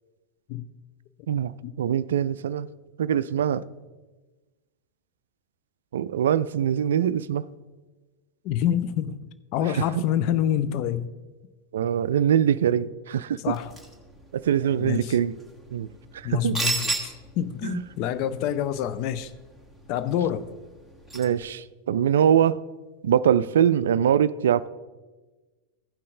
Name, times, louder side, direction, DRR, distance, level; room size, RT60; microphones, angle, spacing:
voice 1, 1.8-2.7 3.0-3.6 5.9-7.4 9.6-10.1 11.7-13.5 14.3-15.3 15.7-15.9 16.1-16.6 17.6-17.8 21.1-22.6 23.0-24.7, right 9 dB, 60° right, 0.3 m, -23 dB
voice 2, 8.4-9.2 9.5-11.1 13.4-13.7 14.8-15.2 16.2-16.9 17.4-19.3 19.9-20.5, left 10 dB, 45° left, 0.5 m, -26 dB
sound 1, 13.5-21.5, right 2 dB, 5° left, 1.7 m, -36 dB
15.5 x 5.6 x 3.7 m
figure-of-eight pair, 90°, 0 cm